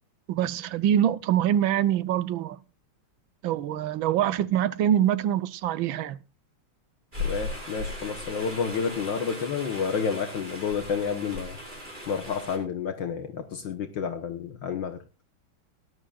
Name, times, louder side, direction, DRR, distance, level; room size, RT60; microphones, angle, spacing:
voice 1, 0.3-2.6 3.4-6.2, right 10 dB, 75° right, 1.5 m, -24 dB
sound 1, 7.1-12.6, left 2 dB, 20° right, 5.6 m, -37 dB
voice 2, 7.2-11.6 12.1-15.0, left 6 dB, 65° left, 1.7 m, -30 dB
19.5 x 11.5 x 2.4 m
omnidirectional pair, 2.3 m